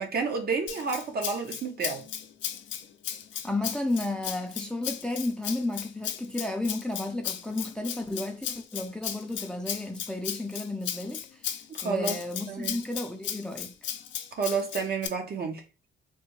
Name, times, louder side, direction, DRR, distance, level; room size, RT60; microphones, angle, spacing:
voice 1, 0.0-2.0 11.7-12.2 12.5-12.8 14.4-15.6, right 5 dB, 50° right, 0.9 m, -30 dB
Rattle (instrument), 0.7-15.1, left 10 dB, 70° left, 0.5 m, -36 dB
voice 2, 3.4-11.5 11.8-13.9, left 2 dB, 5° left, 0.5 m, -32 dB
3.4 x 2.2 x 3.1 m
cardioid pair, 90°, 20 cm